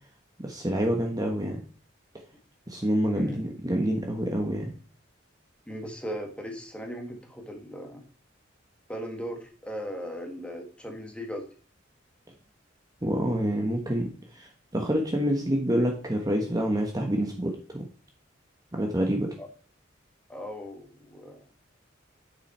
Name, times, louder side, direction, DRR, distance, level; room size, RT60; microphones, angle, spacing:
voice 1, 0.4-1.6 2.7-4.7 13.0-17.9 18.8-19.3, equal, 20° right, 2 dB, 1.2 m, -27 dB
voice 2, 3.1-3.4 5.7-8.1 8.9-11.5 19.4-19.5 20.3-21.5, equal, 5° left, 3 dB, 1.7 m, -38 dB
9.5 x 7.2 x 4.3 m, 0.42 s
head